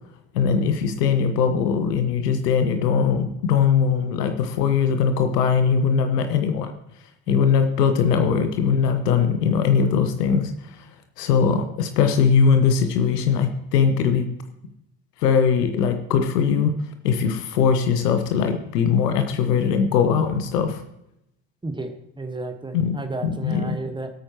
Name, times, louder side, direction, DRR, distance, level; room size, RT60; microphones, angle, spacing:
voice 1, 0.3-6.7 7.3-10.5 11.2-14.2 15.2-16.7 17.0-20.8 22.7-22.9 23.2-23.8, left 6 dB, 70° left, 8 dB, 1.0 m, -20 dB
voice 2, 21.6-24.1, right 2 dB, 10° right, 7 dB, 1.3 m, -32 dB
18.0 x 8.7 x 2.9 m, 0.80 s
figure-of-eight pair, 55°, 49 cm